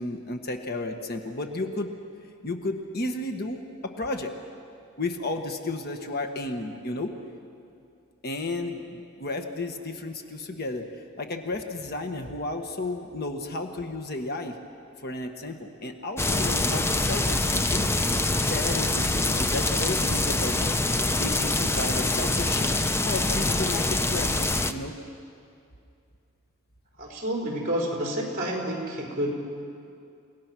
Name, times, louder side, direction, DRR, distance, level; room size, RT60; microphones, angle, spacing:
voice 1, 0.0-1.9 2.4-4.3 5.0-7.1 8.2-14.6 15.0-18.0 18.5-20.8 21.2-22.7 23.0-24.9, left 2 dB, 50° left, 5 dB, 1.4 m, -33 dB
sound 1, 16.2-24.7, left 2 dB, 10° left, 0.6 m, -25 dB
voice 2, 27.0-29.3, equal, 40° right, -1 dB, 4.7 m, -29 dB
30.0 x 18.0 x 6.1 m, 2.4 s
head